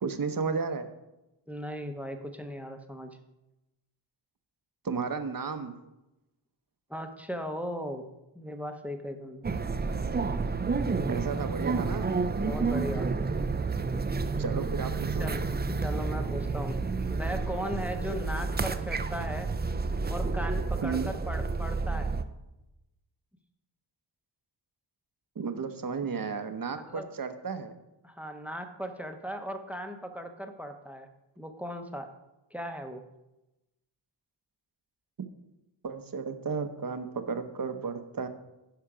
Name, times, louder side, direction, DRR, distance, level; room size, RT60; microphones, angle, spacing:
voice 1, 0.0-0.9 4.8-5.7 11.1-12.1 14.4-15.3 20.8-21.1 25.4-27.7 35.8-38.3, right 5 dB, 45° right, 9 dB, 0.8 m, -33 dB
voice 2, 1.5-3.2 6.9-8.1 8.3-9.5 12.4-13.1 15.2-15.4 15.7-16.8 17.1-19.5 20.1-22.2 26.7-27.1 28.0-31.1 31.4-32.1 32.5-33.0, equal, 5° right, 7 dB, 0.8 m, -37 dB
sound 1, 9.4-22.2, right 4 dB, 25° right, 0.4 m, -30 dB
10.5 x 5.7 x 4.9 m, 0.97 s
wide cardioid pair, 95°, 46 cm